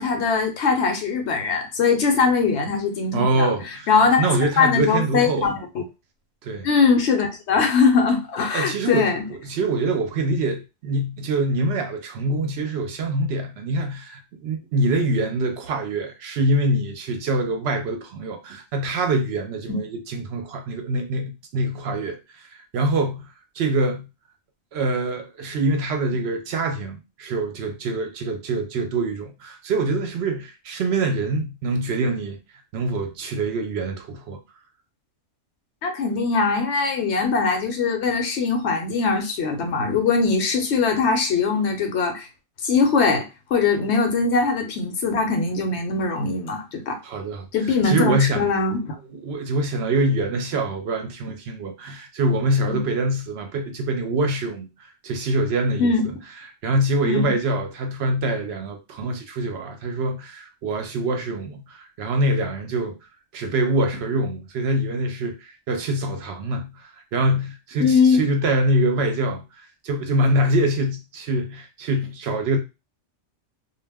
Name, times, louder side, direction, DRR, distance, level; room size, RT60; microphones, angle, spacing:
voice 1, 0.0-3.5 3.9-5.8 6.6-9.2 19.7-19.8 35.8-42.3 42.6-47.0 47.5-49.0 52.7-52.8 55.8-56.0 57.0-57.3 67.8-68.2, left 4 dB, 70° left, 0.9 m, -21 dB
voice 2, 3.1-5.5 6.4-6.7 8.5-23.2 23.5-24.1 24.7-32.4 32.7-34.4 47.0-48.4 49.1-55.9 56.6-63.0 63.3-72.6, right 2 dB, 65° right, 0.8 m, -25 dB
2.3 x 2.1 x 3.3 m
omnidirectional pair, 1.2 m